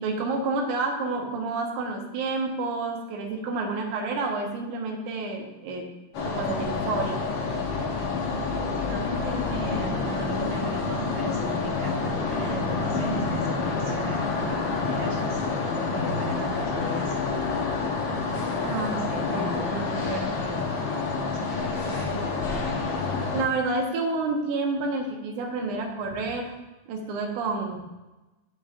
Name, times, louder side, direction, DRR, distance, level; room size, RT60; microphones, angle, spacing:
voice 1, 0.0-5.9 6.3-7.2 7.8-7.9 18.6-20.3 23.3-26.5 26.9-27.8, right 3 dB, 80° right, 1 dB, 2.5 m, -29 dB
sound 1, 6.1-23.4, left 4 dB, 80° left, 1.0 m, -28 dB
voice 2, 8.2-17.6 18.6-20.7 21.1-22.3, right 2 dB, 55° right, -2 dB, 2.0 m, -37 dB
12.0 x 5.2 x 2.5 m, 1.1 s
omnidirectional pair, 3.6 m